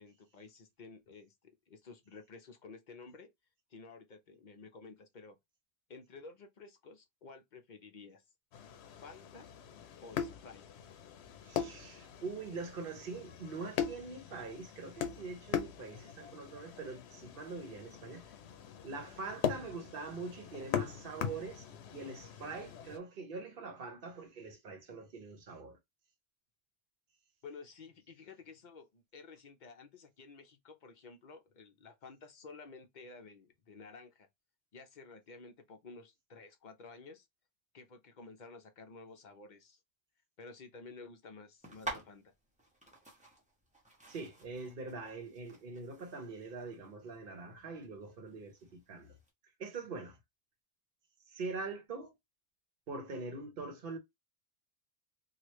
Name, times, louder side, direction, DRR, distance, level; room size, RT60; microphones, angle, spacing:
voice 1, 0.0-1.3 1.7-3.3 3.7-5.4 5.9-8.2 8.9-9.5 10.0-10.6 27.4-34.3 34.7-37.3 37.7-39.8 40.4-42.3, left 4 dB, 50° left, 0.7 m, -52 dB
sound 1, 8.5-23.0, left 8 dB, 85° left, 0.8 m, -41 dB
voice 2, 11.4-18.3 18.8-25.8 44.1-49.2 49.6-50.2 51.3-52.1 52.9-54.0, right 4 dB, 60° right, 1.0 m, -43 dB
sound 2, 41.6-49.3, right 2 dB, 10° right, 0.9 m, -49 dB
3.1 x 2.4 x 3.0 m
omnidirectional pair, 1.1 m